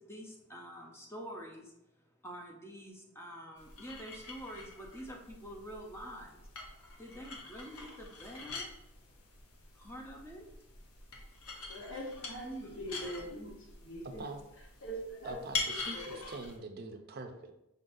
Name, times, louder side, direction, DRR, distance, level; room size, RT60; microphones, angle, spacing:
voice 1, 0.1-1.6 2.2-6.3 7.0-8.6 9.8-10.4 12.4-12.8, equal, 10° left, 0 dB, 0.6 m, -46 dB
sound 1, 3.6-16.6, left 3 dB, 90° left, 0.8 m, -44 dB
voice 2, 11.7-14.3 14.8-15.4 15.7-16.2, equal, 60° left, 1 dB, 0.9 m, -43 dB
voice 3, 15.2-17.5, right 2 dB, 45° right, 5 dB, 0.5 m, -44 dB
5.3 x 3.8 x 2.6 m, 0.85 s
head